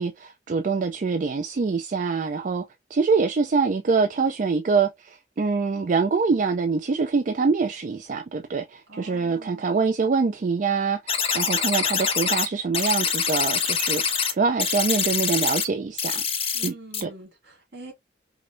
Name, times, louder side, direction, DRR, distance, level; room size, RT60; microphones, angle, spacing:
voice 1, 0.0-2.6 2.9-16.2 16.6-16.7 17.0-17.1, right 4 dB, 45° right, 0.4 m, -24 dB
voice 2, 8.9-9.7 16.5-17.9, right 2 dB, 70° right, 2.1 m, -44 dB
sound 1, 11.1-12.5 12.7-14.3 14.6-15.6 16.0-16.7 16.9-17.0, left 6 dB, 35° left, 0.7 m, -24 dB
4.9 x 2.0 x 2.5 m
head